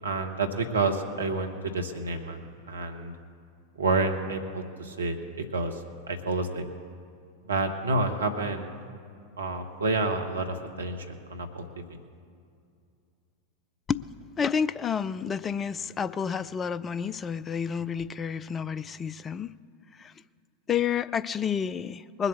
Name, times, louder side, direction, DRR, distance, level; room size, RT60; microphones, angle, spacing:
voice 1, 0.0-3.1 3.8-5.2 5.5-6.6 7.4-8.7 9.4-12.0, right 3 dB, 75° right, 4 dB, 1.1 m, -29 dB
voice 2, 14.4-19.5 20.0-20.1 20.7-22.3, left 7 dB, 20° left, 18 dB, 0.3 m, -30 dB
20.0 x 8.1 x 7.1 m, 2.4 s
figure-of-eight pair, 90°, 0 cm